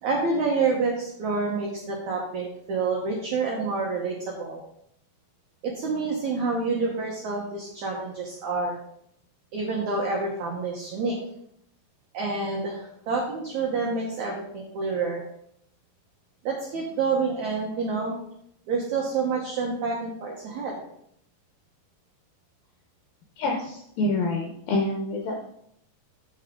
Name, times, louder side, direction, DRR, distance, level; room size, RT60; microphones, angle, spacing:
voice 1, 0.0-4.6 5.6-8.8 9.5-11.2 12.1-15.2 16.4-18.2 18.7-20.8, right 4 dB, 65° right, -1 dB, 1.9 m, -28 dB
voice 2, 23.4-25.4, left 2 dB, 70° left, 1 dB, 2.4 m, -27 dB
8.0 x 7.1 x 3.8 m, 0.72 s
omnidirectional pair, 4.8 m